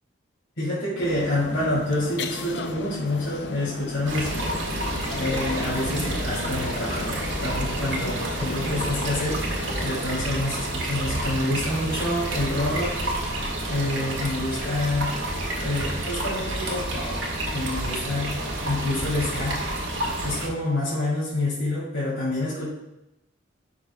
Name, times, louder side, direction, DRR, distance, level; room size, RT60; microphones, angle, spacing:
voice 1, 0.6-4.6 5.1-9.4 9.8-15.1 15.6-19.6 20.2-22.7, left 1 dB, 85° left, -9 dB, 2.7 m, -28 dB
sound 1, 1.0-10.0, left 3 dB, 60° left, 0.5 m, -35 dB
sound 2, 4.1-20.5, right 1 dB, 70° right, 1.5 m, -29 dB
11.0 x 5.9 x 2.3 m, 0.93 s
head